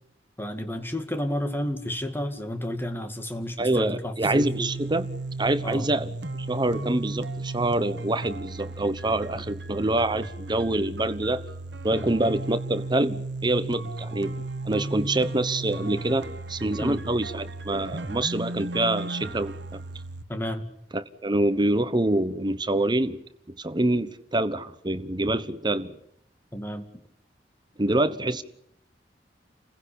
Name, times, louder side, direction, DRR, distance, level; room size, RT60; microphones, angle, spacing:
voice 1, 0.4-4.7 5.6-5.9 9.3-9.4 11.9-12.1 16.8-17.0 20.3-20.7 26.5-26.9, left 1 dB, 15° left, 2.2 m, -31 dB
voice 2, 3.6-5.1 5.4-6.1 6.5-11.4 11.8-14.3 14.6-19.8 20.9-23.2 23.6-26.0 27.8-28.4, right 1 dB, 25° right, 1.1 m, -26 dB
sound 1, 4.2-20.2, right 2 dB, 85° right, 1.3 m, -35 dB
29.0 x 16.0 x 8.7 m
head